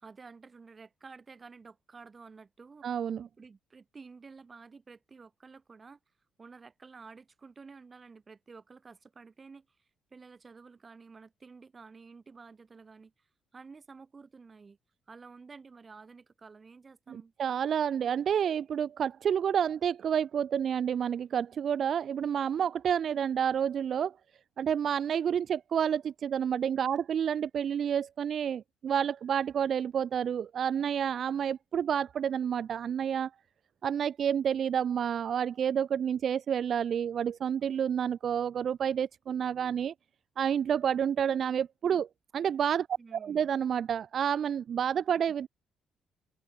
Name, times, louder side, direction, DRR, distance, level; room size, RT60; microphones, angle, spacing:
voice 1, 0.0-2.9 3.4-6.0 6.4-13.3 13.5-14.8 15.1-17.3 43.0-43.5, right 4 dB, 35° right, 7.1 m, -51 dB
voice 2, 2.8-3.3 17.1-24.1 24.6-33.3 33.8-39.9 40.4-42.1 42.3-42.9 43.1-45.5, right 8 dB, 60° right, 0.7 m, -29 dB
open air
cardioid pair, 90°, 0 cm